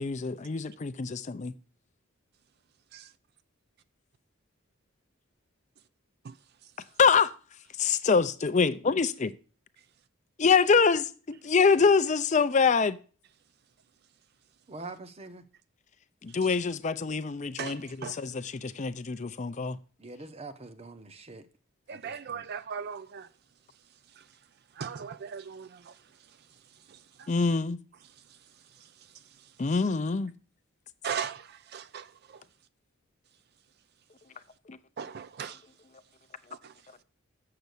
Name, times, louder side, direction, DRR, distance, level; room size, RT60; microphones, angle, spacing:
voice 1, 0.0-1.5 7.0-7.3 7.8-9.3 10.4-13.0 16.2-17.8 18.2-19.8 27.3-27.8 29.6-30.3 34.7-34.8, left 5 dB, 35° left, 0.5 m, -25 dB
voice 2, 14.7-15.4 20.0-21.5 21.9-22.4, right 3 dB, 30° right, 0.8 m, -44 dB
voice 3, 17.6-18.2 21.9-23.3 24.1-24.4 24.7-27.3 28.0-29.6 31.0-32.4 35.0-35.7 36.5-36.9, right 7 dB, 50° right, 0.4 m, -40 dB
7.2 x 6.8 x 8.0 m
head